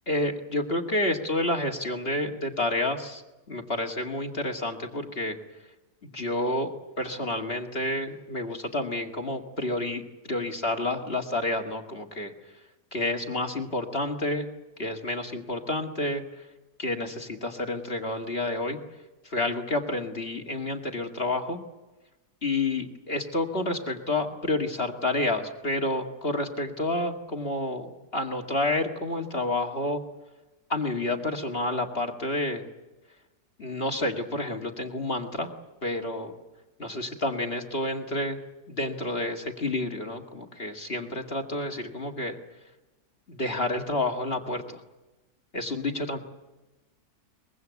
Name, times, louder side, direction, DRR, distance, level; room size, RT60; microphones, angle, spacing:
voice 1, 0.1-3.2 3.5-5.4 6.1-12.3 12.9-14.5 14.8-16.2 16.8-18.8 19.2-21.6 22.4-30.0 30.7-32.7 33.6-35.5 35.8-36.3 36.8-38.4 38.7-42.4 43.3-44.8 45.5-46.2, left 2 dB, 35° left, 3 dB, 2.1 m, -29 dB
24.0 x 22.5 x 8.3 m, 1.1 s
omnidirectional pair, 1.7 m